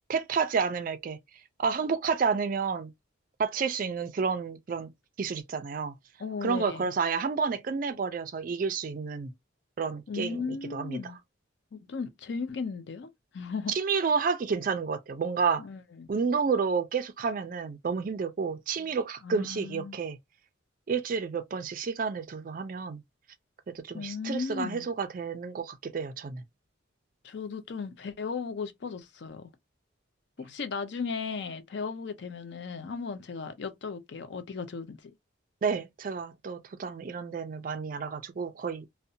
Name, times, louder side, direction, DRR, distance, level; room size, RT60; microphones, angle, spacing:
voice 1, 0.1-1.2 1.6-2.9 3.4-4.9 5.2-5.9 6.4-9.3 9.8-10.4 10.7-11.0 13.7-15.6 16.1-20.2 20.9-23.0 23.7-26.4 35.6-38.8, right 5 dB, 45° right, 0.3 m, -30 dB
voice 2, 6.2-6.8 10.1-11.2 11.7-13.7 15.6-16.1 19.2-20.0 23.9-24.9 27.2-29.5 30.4-35.1, left 5 dB, 60° left, 0.4 m, -36 dB
2.6 x 2.1 x 2.6 m
head